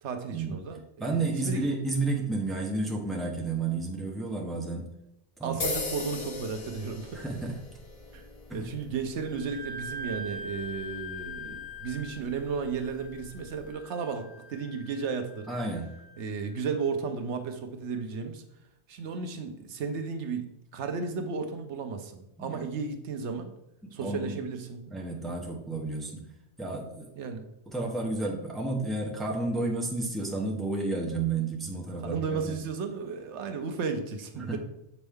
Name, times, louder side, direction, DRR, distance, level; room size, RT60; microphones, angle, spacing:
voice 1, 0.0-1.7 5.4-7.2 8.1-8.3 8.5-15.5 16.2-18.4 18.9-20.4 20.7-23.5 23.9-24.8 27.2-27.5 32.0-34.6, right 5 dB, 80° right, 7 dB, 1.0 m, -34 dB
voice 2, 1.0-4.9 5.4-5.6 7.1-7.5 8.5-8.7 15.5-15.9 22.4-22.6 24.0-24.4 24.9-26.1 26.6-27.1 27.7-32.6 34.5-34.6, right 3 dB, ahead, -1 dB, 0.8 m, -31 dB
sound 1, 5.6-13.7, left 3 dB, 35° left, 0.8 m, -41 dB
Wind instrument woodwind instrument, 9.2-16.6, left 1 dB, 80° left, 1.6 m, -43 dB
7.2 x 4.3 x 3.5 m, 0.86 s
omnidirectional pair, 1.2 m